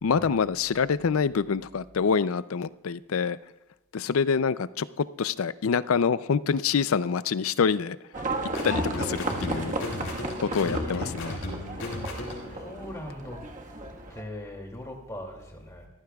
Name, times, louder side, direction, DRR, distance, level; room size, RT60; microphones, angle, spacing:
voice 1, 0.0-3.4 3.9-8.0 8.6-9.7 10.4-11.4, left 6 dB, 90° left, 0.5 m, -26 dB
Livestock farm animals working animals, 8.1-14.2, right 2 dB, 40° right, 1.5 m, -34 dB
sound 1, 8.5-12.6, left 1 dB, 70° left, 5.1 m, -35 dB
voice 2, 10.4-11.2 12.5-13.4 14.1-15.9, left 1 dB, 15° left, 2.5 m, -40 dB
25.0 x 14.5 x 2.4 m
head